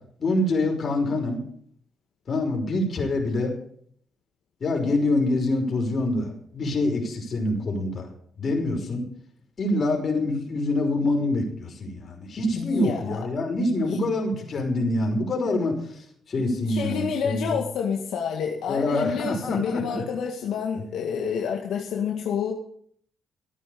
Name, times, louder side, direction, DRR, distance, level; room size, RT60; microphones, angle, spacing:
voice 1, 0.2-1.4 2.3-3.6 4.6-8.1 8.4-9.0 9.6-15.8 16.3-17.6 18.7-20.0, left 2 dB, 45° left, 2 dB, 5.6 m, -25 dB
voice 2, 12.5-13.2 13.8-14.0 16.7-22.5, left 7 dB, 75° left, 0 dB, 2.0 m, -28 dB
16.0 x 8.9 x 7.0 m, 0.63 s
cardioid pair, 90°, 0 cm